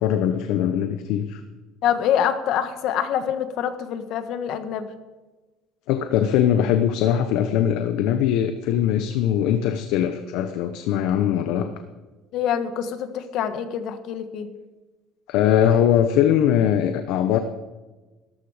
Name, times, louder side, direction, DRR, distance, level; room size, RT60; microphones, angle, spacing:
voice 1, 0.0-1.4 5.9-11.7 15.3-17.4, left 10 dB, 75° left, 8 dB, 1.0 m, -21 dB
voice 2, 1.8-4.9 12.3-14.5, left 9 dB, 55° left, 9 dB, 1.5 m, -25 dB
18.0 x 14.0 x 5.1 m, 1.2 s
cardioid pair, 165°, 0 cm